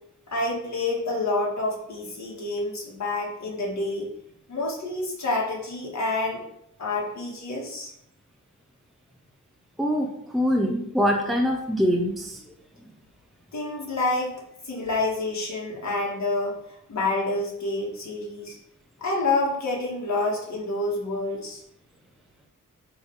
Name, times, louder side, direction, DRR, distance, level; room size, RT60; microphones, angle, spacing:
voice 1, 0.3-4.1 4.5-6.4 6.8-7.9 13.5-14.4 14.7-16.6 16.9-18.6 19.0-21.6, left 2 dB, 55° left, -3 dB, 2.3 m, -28 dB
voice 2, 10.3-12.4, equal, ahead, 0 dB, 0.8 m, -23 dB
8.5 x 3.5 x 4.9 m, 0.75 s
wide cardioid pair, 130°, 32 cm